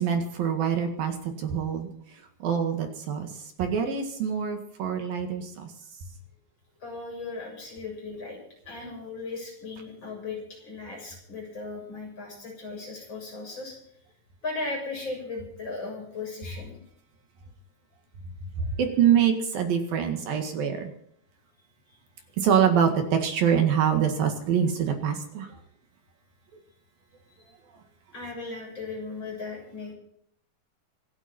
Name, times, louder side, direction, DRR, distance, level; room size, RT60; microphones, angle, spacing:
voice 1, 0.0-1.9 2.4-5.7 18.6-20.9 22.4-25.5, right 8 dB, 70° right, 5 dB, 3.6 m, -25 dB
voice 2, 6.8-8.4 8.7-13.7 14.4-16.8 28.1-29.9, left 3 dB, 30° left, -1 dB, 7.5 m, -37 dB
26.5 x 11.0 x 4.4 m, 0.67 s
omnidirectional pair, 4.4 m